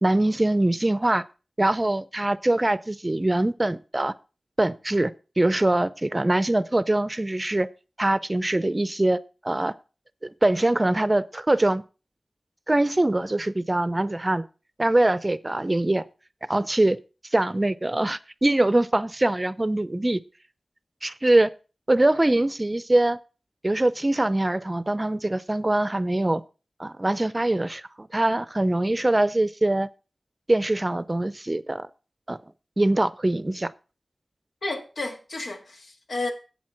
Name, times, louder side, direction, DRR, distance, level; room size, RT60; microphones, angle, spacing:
voice 1, 0.0-1.2 1.6-4.1 4.6-7.7 8.0-9.2 9.4-9.7 10.2-11.8 12.7-14.4 14.8-16.0 16.5-17.0 17.3-20.2 21.0-21.5 21.9-23.2 23.6-26.4 26.8-29.9 30.5-31.9 32.3-32.4 32.8-33.7, right 1 dB, 25° right, 0.5 m, -23 dB
voice 2, 34.6-36.3, left 2 dB, 85° left, 2.1 m, -32 dB
8.3 x 7.6 x 5.7 m
wide cardioid pair, 85°, 0 cm